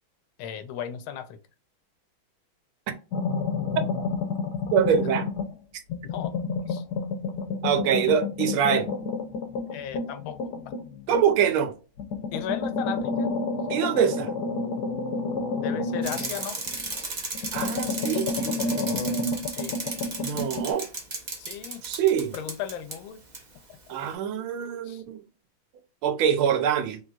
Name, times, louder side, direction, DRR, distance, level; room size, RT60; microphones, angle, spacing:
voice 1, 0.4-1.4 6.0-6.3 6.7-6.8 9.7-10.4 12.3-13.3 15.6-16.6 17.0-17.1 19.6-19.8 21.4-21.8 22.3-23.2 24.8-25.0, left 9 dB, 90° left, 1.5 m, -35 dB
sound 1, 3.1-5.6 5.9-11.5 12.0-17.0 17.3-20.7, left 3 dB, 70° left, 1.0 m, -30 dB
voice 2, 4.7-5.3 7.6-8.9 11.1-11.7 13.7-14.3 17.5-19.0 20.2-20.9 21.8-22.3 23.9-25.2 26.0-27.0, right 8 dB, 90° right, 1.6 m, -24 dB
Bicycle, 16.0-23.0 23.3-23.4, right 3 dB, 70° right, 0.4 m, -35 dB
3.9 x 3.3 x 2.3 m
omnidirectional pair, 2.2 m